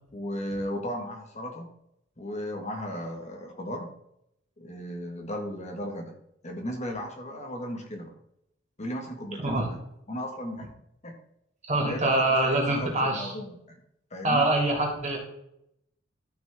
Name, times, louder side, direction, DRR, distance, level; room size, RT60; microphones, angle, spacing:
voice 1, 0.1-1.7 2.2-3.9 4.6-6.1 6.4-8.2 8.8-9.8 10.1-10.7 11.0-11.1 11.8-13.8 14.1-14.5, equal, 35° left, 2 dB, 1.6 m, -35 dB
voice 2, 9.4-9.7 11.7-13.3 14.2-15.2, right 2 dB, 35° right, -1 dB, 3.2 m, -24 dB
13.0 x 6.1 x 3.6 m, 0.77 s
head